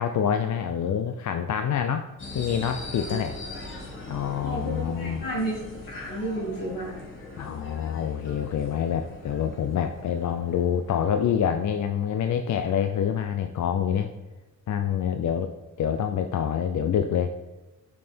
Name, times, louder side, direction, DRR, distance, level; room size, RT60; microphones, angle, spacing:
voice 1, 0.0-2.1 2.3-3.4 4.1-5.2 7.4-14.1 14.7-15.5 15.8-17.3, left 8 dB, 60° left, 7 dB, 0.5 m, -26 dB
sound 1, 2.2-12.1, left 2 dB, 35° left, 1.8 m, -41 dB
voice 2, 4.4-7.0, right 1 dB, 85° left, -4 dB, 2.6 m, -32 dB
6.5 x 5.5 x 4.4 m, 1.0 s
cardioid pair, 100°, 33 cm